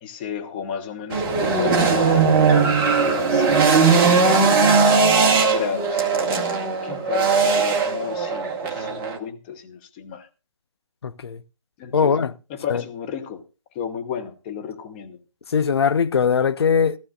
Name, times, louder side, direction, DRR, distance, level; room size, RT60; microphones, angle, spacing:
voice 1, 0.0-2.3 2.9-4.6 5.5-6.0 6.8-10.3 11.8-12.2 12.5-13.4 13.7-15.2, left 8 dB, 15° left, 0.9 m, -32 dB
sound 1, 1.1-9.2, right 4 dB, 10° right, 0.8 m, -19 dB
voice 2, 11.0-11.4 11.9-12.3 12.7-12.8 15.5-17.0, left 6 dB, 50° left, 0.6 m, -20 dB
14.5 x 14.0 x 2.4 m
figure-of-eight pair, 155°, 18 cm